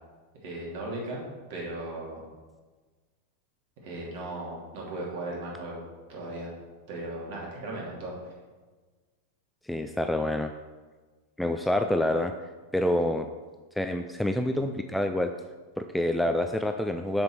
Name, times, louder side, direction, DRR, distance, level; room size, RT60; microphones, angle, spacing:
voice 1, 0.4-1.2 1.5-2.3 3.8-5.8 6.1-6.5 6.9-8.3, right 2 dB, 50° right, -3 dB, 2.7 m, -37 dB
voice 2, 9.7-10.5 11.4-12.3 12.7-13.3 13.8-15.3 15.8-17.2, left 1 dB, 5° left, 6 dB, 0.4 m, -27 dB
6.7 x 6.7 x 4.6 m, 1.3 s
figure-of-eight pair, 90°, 0 cm